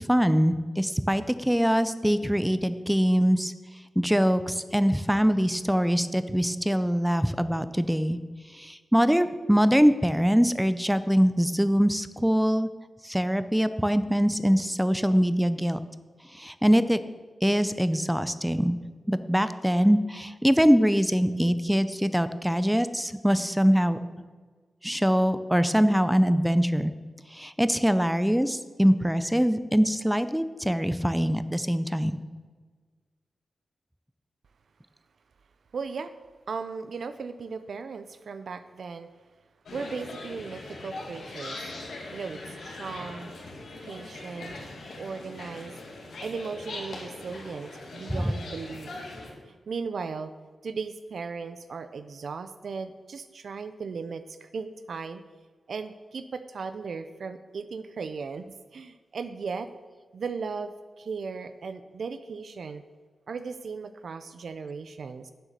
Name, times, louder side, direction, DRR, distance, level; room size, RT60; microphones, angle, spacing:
voice 1, 0.1-3.5 4.0-8.2 8.5-12.7 13.0-15.8 16.3-17.0 17.4-18.8 19.1-24.0 24.8-26.9 27.3-32.2 48.1-48.3, equal, 5° right, 12 dB, 0.5 m, -23 dB
voice 2, 35.7-36.1 36.5-39.1 39.7-41.7 42.1-43.3 43.8-44.5 45.0-45.8 46.2-48.9 49.5-50.3 50.6-55.2 55.7-59.7 60.1-62.8 63.3-65.3, right 5 dB, 65° right, 11 dB, 0.5 m, -37 dB
sound 1, 39.7-49.3, left 2 dB, 80° left, 2.4 m, -41 dB
9.0 x 7.9 x 6.6 m, 1.4 s
wide cardioid pair, 115°, 0 cm